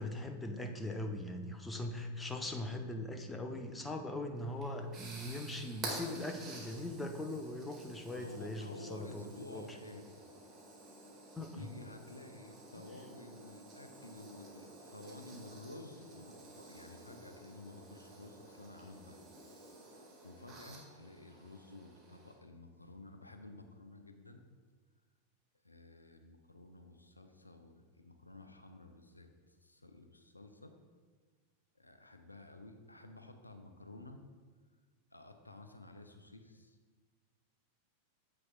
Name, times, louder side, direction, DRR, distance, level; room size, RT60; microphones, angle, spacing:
voice 1, 0.0-9.6 11.4-11.7, left 1 dB, 10° left, 5 dB, 0.7 m, -40 dB
sound 1, 4.4-22.3, right 2 dB, 25° right, 2.0 m, -51 dB
voice 2, 8.1-10.0 11.4-19.5 19.8-24.4 25.6-30.8 31.7-34.2 35.1-36.8, left 2 dB, 85° left, 7 dB, 0.6 m, -53 dB
9.4 x 7.6 x 2.4 m, 1.5 s
figure-of-eight pair, 90°, 0 cm